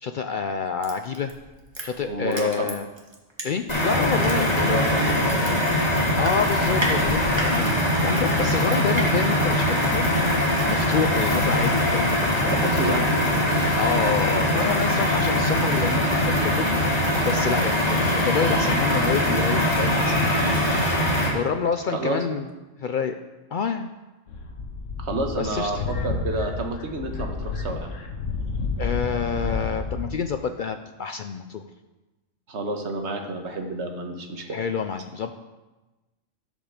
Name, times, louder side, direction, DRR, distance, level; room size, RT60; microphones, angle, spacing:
voice 1, 0.0-1.3 1.8-2.9 3.4-4.9 6.2-7.6 8.0-10.2 10.7-12.6 13.7-16.8 17.2-20.4 21.3-22.5 22.8-23.2 23.5-23.9 25.4-25.8 28.8-31.6 34.5-35.3, left 6 dB, 65° left, 7 dB, 0.5 m, -28 dB
Crushing, 0.8-3.8 4.2-9.1 9.4-9.5, right 1 dB, 20° right, 1.5 m, -34 dB
voice 2, 2.1-2.7 4.3-6.1 12.5-13.5 21.9-22.5 25.0-27.9 32.5-34.5, right 2 dB, 65° right, 3 dB, 1.6 m, -30 dB
sound 1, 3.7-21.3, left 1 dB, 30° left, 2.5 m, -22 dB
sound 2, 24.3-30.1, left 3 dB, 80° left, 1.4 m, -30 dB
12.0 x 5.3 x 6.5 m, 1.1 s
omnidirectional pair, 1.3 m